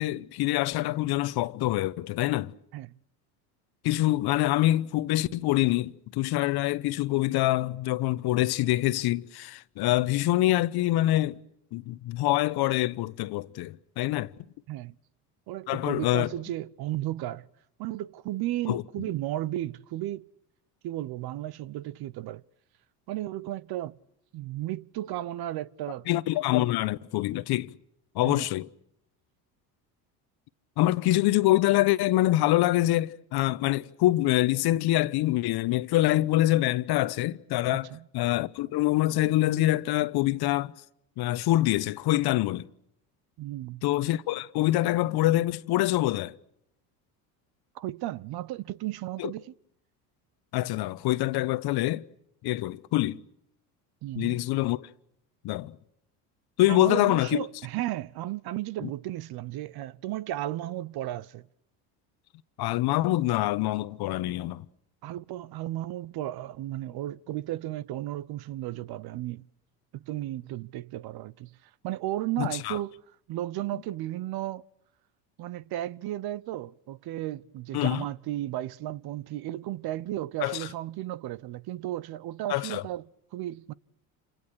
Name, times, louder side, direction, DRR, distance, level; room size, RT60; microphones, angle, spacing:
voice 1, 0.0-2.5 3.8-11.4 11.7-14.3 15.7-16.3 18.7-18.8 26.1-27.7 28.1-28.7 30.8-37.9 38.1-40.7 41.2-42.7 43.8-46.3 49.2-49.3 50.5-52.1 52.4-53.2 54.2-54.9 55.4-55.7 56.6-57.4 62.6-64.6 72.4-72.8 77.7-78.0 80.4-80.6 82.5-82.8, left 16 dB, 55° left, 1.1 m, -25 dB
voice 2, 15.5-17.5 17.8-20.3 20.8-22.4 23.1-24.0 24.3-26.1 26.6-26.7 28.2-28.5 37.7-38.0 43.4-43.8 47.7-49.5 54.0-54.4 56.7-61.5 65.0-69.4 69.9-71.6 71.8-73.0 73.3-74.7 75.4-83.0 83.3-83.7, right 14 dB, 55° right, 0.9 m, -34 dB
28.0 x 26.0 x 6.4 m
supercardioid pair, 85°, 45 cm